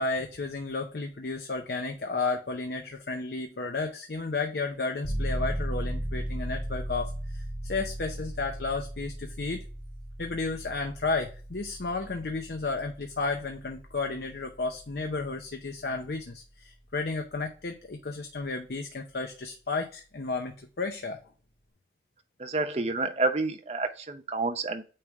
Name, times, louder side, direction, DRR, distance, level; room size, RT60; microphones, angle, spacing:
voice 1, 0.0-9.6 10.2-21.2, left 3 dB, 65° left, 4 dB, 0.7 m, -33 dB
sound 1, 5.0-15.6, right 1 dB, 15° right, 2.0 m, -36 dB
voice 2, 22.4-24.8, right 3 dB, 35° right, 7 dB, 0.7 m, -29 dB
8.7 x 3.3 x 3.5 m, 0.37 s
head